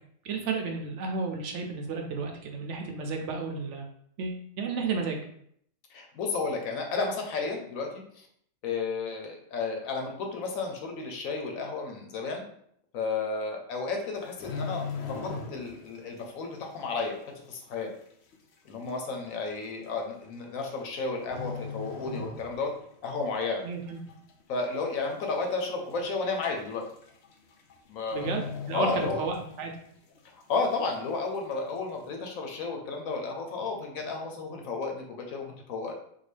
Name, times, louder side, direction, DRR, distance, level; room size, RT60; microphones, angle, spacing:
voice 1, 0.2-3.9 4.2-5.2 23.6-24.0 28.1-29.7, right 4 dB, 70° right, 3 dB, 0.9 m, -32 dB
voice 2, 5.9-8.3 8.6-12.4 12.9-14.9 15.2-17.9 18.6-22.7 23.0-23.6 24.5-26.8 27.9-28.3 28.7-29.2 30.3-35.9, left 4 dB, 85° left, 2 dB, 1.1 m, -32 dB
sound 1, 14.2-15.9 16.2-16.5 17.0-17.1 18.0-18.1 18.3-18.4 19.3-19.5 20.6-21.0 21.3-22.8 23.2-23.4 23.9-24.4 24.8-24.9 25.1-25.2 25.6-25.7 26.7-26.8 27.0-27.3 27.6-27.7 28.1-29.8 30.1-30.2, left 4 dB, 65° left, 0.8 m, -38 dB
3.7 x 2.2 x 3.2 m, 0.67 s
omnidirectional pair, 1.4 m